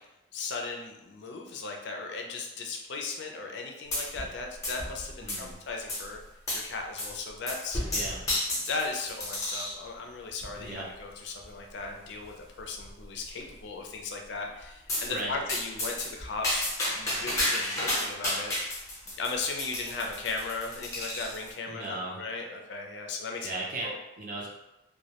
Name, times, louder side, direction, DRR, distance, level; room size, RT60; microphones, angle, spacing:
voice 1, 0.3-6.2 6.5-7.8 8.6-18.8 19.2-23.5 23.8-23.9, left 4 dB, 65° left, 2 dB, 0.4 m, -37 dB
sound 1, 3.9-4.4 4.6-5.5 5.9-6.0 6.5-6.7 7.0-7.2 7.5-9.8 10.4-10.8 11.4-11.5 11.8-11.9 12.2-12.3 12.8-13.2 14.9-15.1 15.5-21.5, left 1 dB, 15° left, 0.6 m, -32 dB
voice 2, 5.2-5.6 7.9-8.2 10.6-10.9 15.1-15.4 21.7-22.2 23.4-24.5, right 2 dB, 45° right, -4 dB, 0.5 m, -36 dB
2.2 x 2.0 x 2.8 m, 0.92 s
head